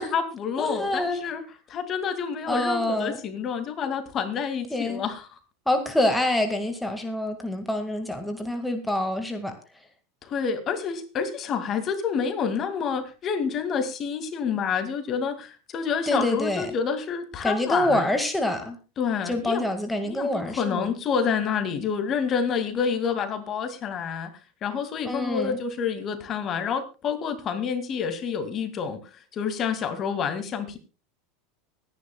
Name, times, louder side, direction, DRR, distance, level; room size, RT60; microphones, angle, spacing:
voice 1, 0.0-1.4 1.7-5.4 10.2-18.1 19.0-19.6 20.1-24.3 24.6-29.0 29.3-30.8, left 6 dB, 35° left, 9 dB, 2.3 m, -28 dB
voice 2, 0.6-1.2 2.5-3.2 4.7-5.0 5.7-9.5 16.1-16.7 17.4-18.8 19.3-20.8 25.0-25.6, left 1 dB, 5° left, 5 dB, 1.9 m, -26 dB
24.5 x 10.5 x 2.3 m, 0.31 s
supercardioid pair, 120°, 0 cm